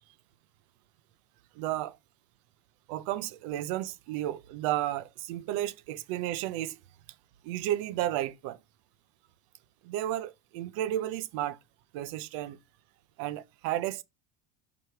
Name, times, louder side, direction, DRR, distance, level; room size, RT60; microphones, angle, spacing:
voice 1, 1.6-2.0 2.9-6.8 7.4-8.6 9.8-11.6 11.9-12.6 13.2-14.0, right 13 dB, 70° right, 0.6 m, -32 dB
5.3 x 4.5 x 4.7 m
cardioid pair, 165°, 17 cm